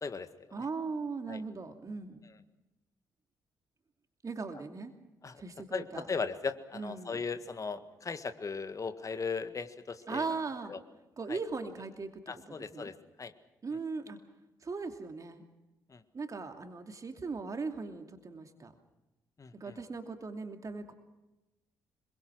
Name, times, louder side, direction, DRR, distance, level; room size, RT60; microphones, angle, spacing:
voice 1, 0.5-2.3 4.2-4.9 5.4-6.1 6.7-7.3 10.1-10.7 11.2-12.9 13.6-14.2 14.6-15.4 16.1-18.7 19.5-20.9, right 4 dB, 35° right, 5 dB, 2.7 m, -39 dB
voice 2, 5.7-10.2 10.7-10.8 11.3-11.4 12.3-13.3 15.9-16.0 19.4-19.5, left 5 dB, 35° left, 11 dB, 1.7 m, -37 dB
26.5 x 23.0 x 6.3 m, 1.0 s
figure-of-eight pair, 40°, 10 cm